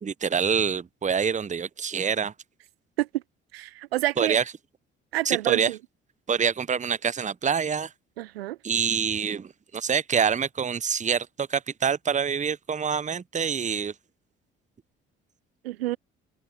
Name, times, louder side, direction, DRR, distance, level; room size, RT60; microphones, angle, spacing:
voice 1, 0.0-2.3 4.2-4.4 5.2-5.7 6.3-7.9 8.6-13.9, right 6 dB, 25° right, 0.8 m, -26 dB
voice 2, 3.5-4.4 5.1-5.8 8.2-8.6 15.6-16.0, right 16 dB, 85° right, 0.6 m, -28 dB
open air
hypercardioid pair, 50°, 30 cm